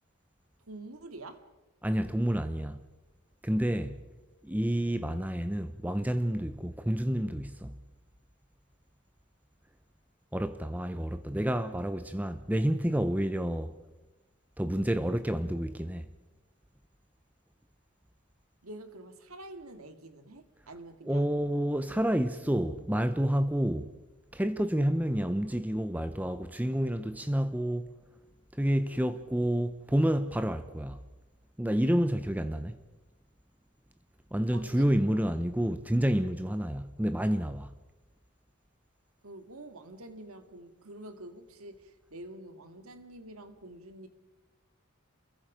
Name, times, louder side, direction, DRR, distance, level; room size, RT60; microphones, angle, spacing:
voice 1, 0.6-1.5 18.6-21.3 34.5-35.2 39.2-44.1, right 1 dB, 90° right, 2.1 m, -47 dB
voice 2, 1.8-2.8 3.4-4.0 4.4-7.7 10.3-13.7 14.6-16.0 21.1-23.9 24.3-27.9 28.5-31.0 31.6-32.7 34.3-37.7, equal, 5° right, 0.6 m, -29 dB
28.5 x 22.5 x 5.1 m
head